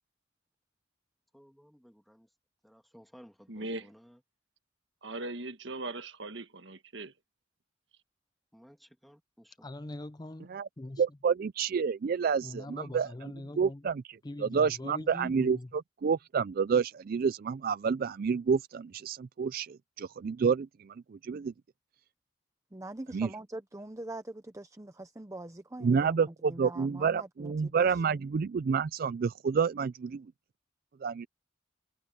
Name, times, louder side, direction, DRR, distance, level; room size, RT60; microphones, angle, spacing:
voice 1, 1.3-2.3 2.6-4.2 8.5-9.8, equal, ahead, 2.2 m, -57 dB
voice 2, 3.5-3.9 5.0-7.1, right 2 dB, 65° right, 1.6 m, -39 dB
voice 3, 9.6-11.0 12.4-13.9 14.2-15.7, left 1 dB, 20° left, 0.5 m, -42 dB
voice 4, 11.0-13.1 13.6-14.0 14.4-21.5 23.1-23.3 25.8-30.3 31.0-31.3, right 6 dB, 50° right, 0.3 m, -29 dB
voice 5, 22.7-28.2, right 1 dB, 15° right, 0.7 m, -43 dB
head